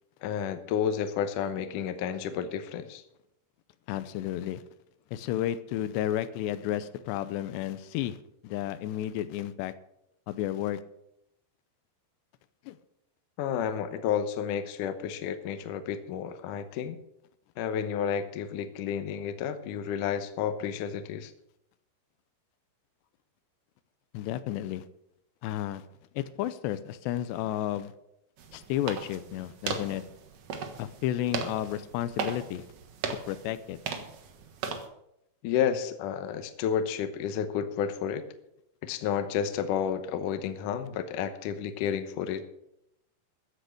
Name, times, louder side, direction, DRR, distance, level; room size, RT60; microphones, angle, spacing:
voice 1, 0.2-3.0 13.4-17.0 17.6-21.3 35.4-38.2 38.8-42.4, left 8 dB, 70° left, 9 dB, 2.1 m, -31 dB
voice 2, 3.9-4.6 5.1-8.2 8.4-9.7 10.3-10.8 12.7-12.8 24.1-24.9 25.4-25.9 26.2-27.9 28.5-30.1 30.8-32.7 33.3-33.8, left 12 dB, 85° left, 14 dB, 2.9 m, -32 dB
sound 1, 28.4-34.9, right 5 dB, 65° right, 1.6 m, -37 dB
14.5 x 8.7 x 6.6 m, 0.79 s
omnidirectional pair, 4.8 m